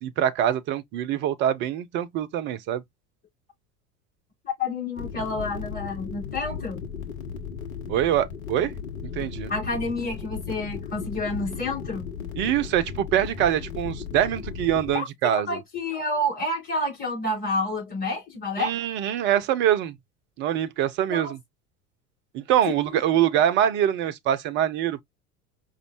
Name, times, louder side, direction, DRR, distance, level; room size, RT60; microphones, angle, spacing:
voice 1, 0.0-2.8 7.9-8.7 9.1-9.5 12.4-15.6 18.6-20.0 20.4-21.4 22.3-25.0, right 11 dB, 25° right, 0.4 m, -24 dB
voice 2, 4.4-6.8 9.5-12.1 14.9-15.0 15.3-18.7 21.1-21.3 22.7-22.8, left 2 dB, 20° left, 3.3 m, -29 dB
sound 1, 5.0-14.9, left 7 dB, 65° left, 1.1 m, -36 dB
5.1 x 2.3 x 2.8 m
figure-of-eight pair, 75°, 44 cm